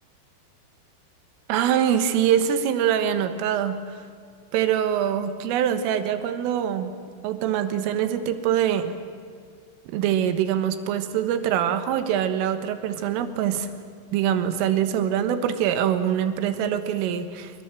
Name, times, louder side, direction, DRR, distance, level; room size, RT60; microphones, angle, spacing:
voice 1, 1.5-3.8 4.5-6.9 7.2-8.9 9.9-13.7 14.1-17.5, right 9 dB, 75° right, 10 dB, 3.9 m, -24 dB
25.5 x 23.5 x 7.6 m, 2.2 s
omnidirectional pair, 6.0 m